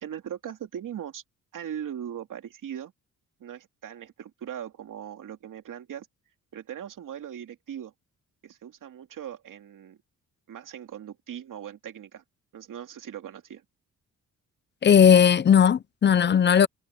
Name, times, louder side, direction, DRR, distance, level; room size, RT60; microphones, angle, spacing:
voice 1, 0.0-1.2 1.5-2.9 3.4-6.1 6.5-7.9 8.4-10.0 10.5-12.2 12.5-13.6, right 9 dB, 70° right, 2.6 m, -39 dB
voice 2, 14.8-16.7, left 8 dB, 35° left, 0.5 m, -17 dB
cardioid pair, 115°, 33 cm